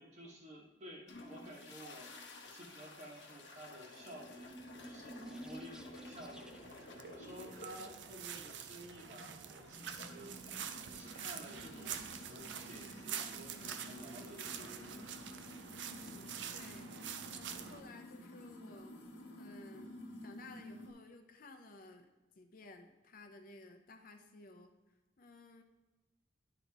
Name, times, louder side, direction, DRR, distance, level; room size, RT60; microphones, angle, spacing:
voice 1, 0.0-2.1 2.4-4.5 4.8-15.2, equal, 40° right, -1 dB, 1.3 m, -53 dB
sound 1, 1.1-20.9, left 1 dB, 90° left, 1.0 m, -53 dB
sound 2, 3.9-6.9, right 1 dB, 5° right, 0.3 m, -51 dB
sound 3, 6.2-17.8, right 8 dB, 75° right, 0.5 m, -46 dB
voice 2, 15.9-22.1 22.4-24.7 25.2-25.6, left 2 dB, 50° left, 5 dB, 0.6 m, -56 dB
10.5 x 4.1 x 3.4 m, 1.1 s
head